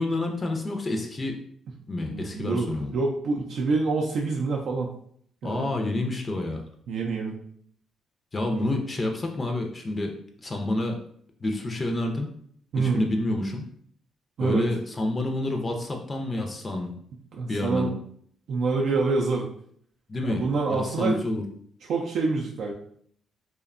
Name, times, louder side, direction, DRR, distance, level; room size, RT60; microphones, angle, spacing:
voice 1, 0.0-1.4 1.9-2.9 5.4-6.6 8.3-10.2 10.4-11.0 11.4-12.3 12.8-13.6 14.4-16.9 17.5-17.9 20.1-21.4, left 2 dB, 30° left, 3 dB, 0.4 m, -28 dB
voice 2, 2.1-4.9 5.4-5.7 6.9-7.4 8.5-8.7 12.7-13.1 14.4-14.6 17.3-17.9 18.5-19.5 20.2-21.2 21.9-22.7, right 4 dB, 70° right, -1 dB, 0.3 m, -26 dB
2.6 x 2.1 x 2.4 m, 0.63 s
cardioid pair, 90°, 0 cm